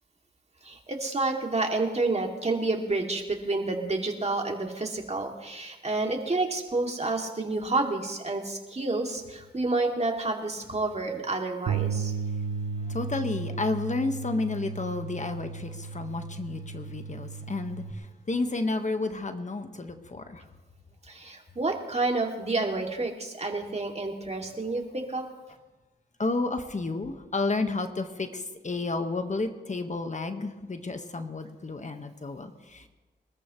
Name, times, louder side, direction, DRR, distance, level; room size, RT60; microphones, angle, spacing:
voice 1, 0.6-12.1 21.1-25.3, right 3 dB, 35° right, 1 dB, 2.6 m, -29 dB
Bass guitar, 11.7-17.9, right 5 dB, 75° right, 1.2 m, -34 dB
voice 2, 12.8-20.4 26.2-32.9, left 3 dB, 40° left, 6 dB, 1.5 m, -31 dB
24.0 x 13.5 x 3.2 m, 1.2 s
cardioid pair, 55°, 19 cm